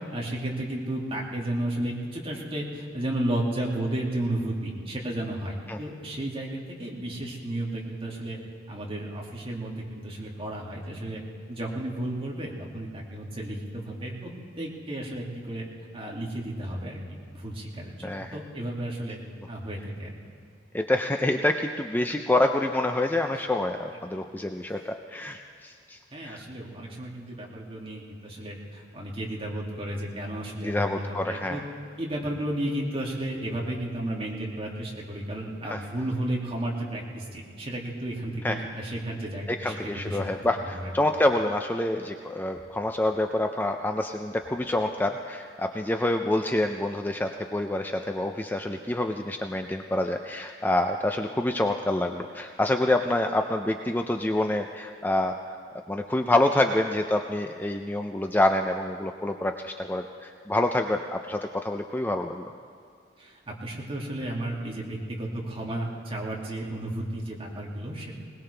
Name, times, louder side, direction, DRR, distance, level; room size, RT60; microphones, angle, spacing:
voice 1, 0.1-8.4 8.7-11.2 11.5-14.3 14.6-15.7 15.9-17.0 17.3-19.2 19.5-20.1 26.1-31.6 32.0-40.9 63.2-68.2, right 1 dB, 30° right, -3 dB, 2.4 m, -33 dB
voice 2, 18.0-18.4 20.7-26.4 30.6-31.6 35.6-35.8 38.4-38.6 39.5-55.4 55.9-62.4, left 1 dB, 10° left, 5 dB, 0.5 m, -27 dB
20.5 x 19.0 x 3.4 m, 2.2 s
head